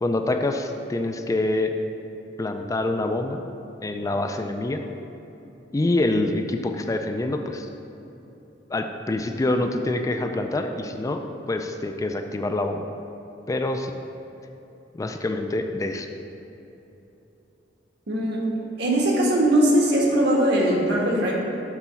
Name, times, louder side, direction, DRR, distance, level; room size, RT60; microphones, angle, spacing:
voice 1, 0.0-1.7 2.4-3.4 3.8-4.8 5.7-7.7 8.7-11.2 11.5-12.8 13.5-13.9 14.9-16.1, left 2 dB, 20° left, 6 dB, 0.3 m, -26 dB
voice 2, 18.1-18.4 18.8-21.3, right 1 dB, 65° right, -3 dB, 1.4 m, -20 dB
6.8 x 4.1 x 5.7 m, 3.0 s
head